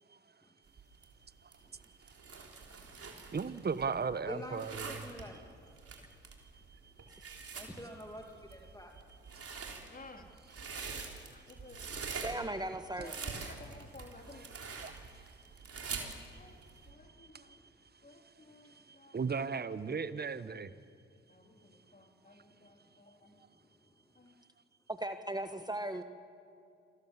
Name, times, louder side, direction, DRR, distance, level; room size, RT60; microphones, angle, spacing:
sound 1, 0.7-16.9, right 5 dB, 50° right, 3.9 m, -45 dB
voice 1, 3.3-5.1 6.5-7.2 9.2-9.4 14.3-14.5 14.8-15.4 16.6-16.9 17.2-17.6 18.2-18.3 18.6-20.7, right 5 dB, 30° right, 1.2 m, -38 dB
voice 2, 4.3-5.4 7.5-8.9, left 1 dB, 10° left, 2.6 m, -46 dB
voice 3, 9.9-10.3 10.9-11.0 11.3-12.6 13.0-14.5 15.9-16.5 16.9-17.6 18.0-19.2 21.3-23.4 24.2-24.4, left 2 dB, 25° left, 3.7 m, -55 dB
voice 4, 12.2-13.1 24.9-26.0, right 1 dB, 15° right, 1.5 m, -37 dB
27.5 x 18.0 x 7.5 m
hypercardioid pair, 45°, 31 cm